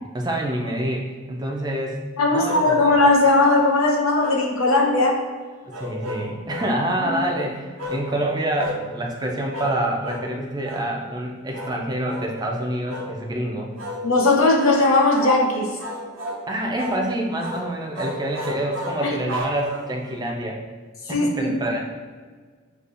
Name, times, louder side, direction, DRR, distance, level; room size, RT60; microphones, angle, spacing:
voice 1, 0.1-2.0 2.3-2.9 5.6-13.7 16.5-20.6 21.1-21.8, right 1 dB, 20° right, 0 dB, 0.4 m, -27 dB
voice 2, 2.2-5.2 7.0-7.2 14.0-15.8 19.0-19.1 21.1-21.5, left 2 dB, 85° left, -1 dB, 0.8 m, -18 dB
sound 1, 2.4-3.2 4.2-5.2 5.7-6.7 7.8-8.0 8.6-8.8 9.5-9.8 10.0-10.3 10.6-10.9 11.5-11.8 12.1-12.3 12.9-13.1 13.8-14.0 14.5-14.8 15.1-15.4 15.8-16.4 16.8-17.0 17.4-17.7 17.9-20.1, left 1 dB, 65° right, 0.6 m, -33 dB
6.7 x 2.4 x 2.5 m, 1.5 s
head